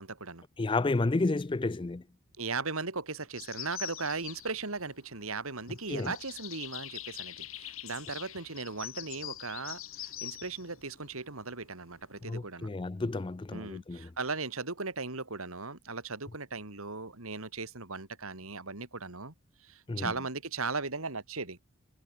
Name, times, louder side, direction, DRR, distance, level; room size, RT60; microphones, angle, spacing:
voice 1, 0.0-0.4 2.4-12.7 13.5-21.6, right 4 dB, 75° right, 2.8 m, -37 dB
voice 2, 0.6-2.0 5.9-6.1 12.2-14.1 19.9-20.1, left 3 dB, 25° left, 0.4 m, -31 dB
sound 1, 3.4-12.2, left 13 dB, 70° left, 7.6 m, -44 dB
head